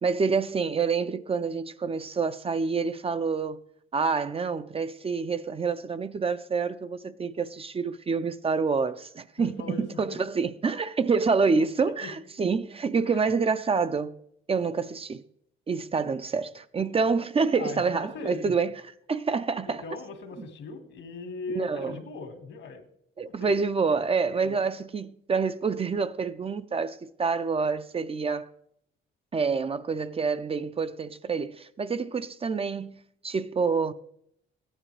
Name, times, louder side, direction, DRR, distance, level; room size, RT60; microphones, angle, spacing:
voice 1, 0.0-3.6 3.9-14.1 14.5-15.2 15.7-18.7 19.1-19.8 20.4-20.5 21.5-22.0 23.2-28.5 29.3-33.9, right 5 dB, 30° right, 0.5 m, -27 dB
voice 2, 9.4-10.2 11.8-12.1 13.1-13.3 17.5-18.6 19.7-22.8 23.3-23.6 24.4-24.6, left 4 dB, 75° left, 2.0 m, -39 dB
15.0 x 10.0 x 3.3 m
cardioid pair, 90°, 20 cm